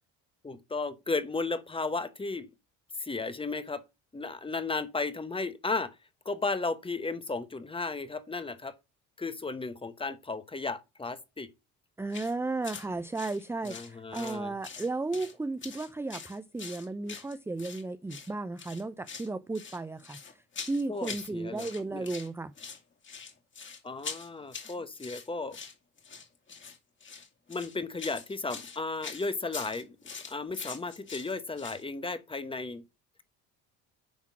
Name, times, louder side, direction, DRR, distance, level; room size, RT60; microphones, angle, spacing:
voice 1, 0.4-2.5 3.0-3.8 4.1-5.9 6.2-8.7 9.2-11.5 13.6-14.5 20.9-21.7 21.9-22.1 23.8-25.6 27.5-30.0 30.2-32.8, left 3 dB, 15° left, 1.1 m, -34 dB
voice 2, 12.0-22.5, right 3 dB, 5° right, 0.5 m, -34 dB
sound 1, 12.1-12.3 12.6-12.9 13.1-14.4 14.6-15.3 15.6-17.8 18.1-18.3 18.6-19.3 19.5-21.3 21.6-22.3 22.6-31.8, left 5 dB, 35° left, 2.5 m, -43 dB
10.0 x 3.7 x 6.1 m
supercardioid pair, 85°, 33 cm